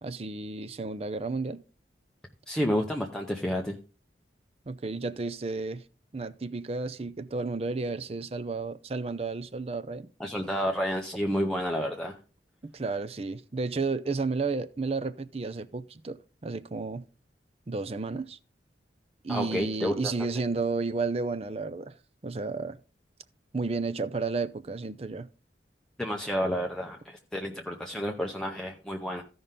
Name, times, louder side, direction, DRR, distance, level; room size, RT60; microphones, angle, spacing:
voice 1, 0.0-1.6 4.7-5.8 6.1-10.1 12.6-17.1 17.7-18.4 19.2-21.9 22.2-22.8 23.5-25.3, right 3 dB, 35° right, 0.5 m, -32 dB
voice 2, 2.5-3.8 10.2-12.1 19.3-20.1 26.0-29.2, equal, 5° left, 0.7 m, -30 dB
15.0 x 5.5 x 3.7 m
head